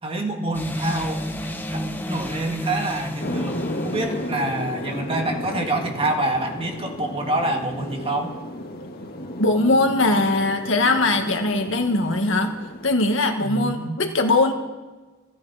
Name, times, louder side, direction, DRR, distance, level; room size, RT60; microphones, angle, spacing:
voice 1, 0.0-1.2 1.7-8.3 13.4-14.0, right 2 dB, 30° right, 3 dB, 2.0 m, -27 dB
sound 1, 0.5-4.9, equal, 10° left, 1.2 m, -31 dB
sound 2, 3.2-13.9, left 1 dB, 50° left, 1.9 m, -34 dB
voice 2, 9.4-12.5 12.8-14.5, left 2 dB, 70° left, 4 dB, 1.9 m, -20 dB
29.0 x 10.5 x 4.3 m, 1.2 s
head